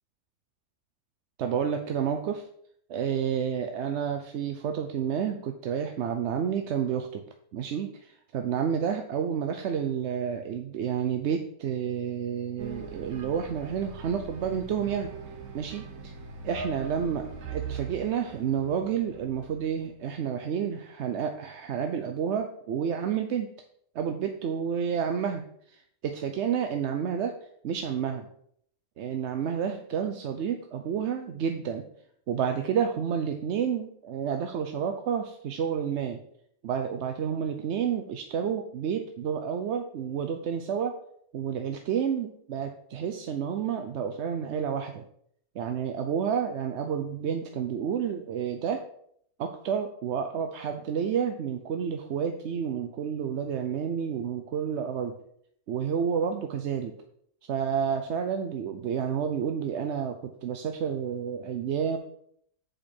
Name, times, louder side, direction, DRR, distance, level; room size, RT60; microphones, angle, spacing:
voice 1, 1.4-2.5 2.9-7.2 7.5-15.1 15.5-16.1 16.4-23.5 23.9-27.3 27.6-28.3 29.0-31.8 32.3-36.2 36.6-41.0 41.3-45.0 45.5-48.8 49.4-55.1 55.7-56.9 57.4-62.0, right 7 dB, 60° right, 5 dB, 0.8 m, -30 dB
sound 1, 12.6-19.9, right 5 dB, 85° right, 1.5 m, -41 dB
8.3 x 5.2 x 4.4 m, 0.67 s
omnidirectional pair, 1.5 m